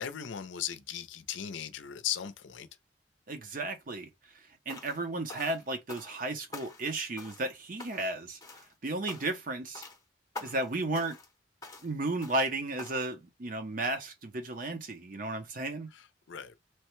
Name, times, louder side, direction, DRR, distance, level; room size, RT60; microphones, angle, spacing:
voice 1, 0.0-2.7 15.9-16.5, left 9 dB, 85° left, 0.5 m, -37 dB
voice 2, 3.3-9.8 10.4-11.2 11.8-15.9, right 2 dB, 45° right, 0.6 m, -34 dB
sound 1, 4.7-5.0 5.3-6.2 6.5-6.9 7.2-7.5 7.8-8.2 8.4-8.7 9.1-9.5 9.7-10.0 10.3-10.7 10.9-11.3 11.6-11.9 12.2-12.5 12.8-13.1, left 3 dB, 20° left, 0.7 m, -46 dB
3.0 x 2.1 x 3.1 m
head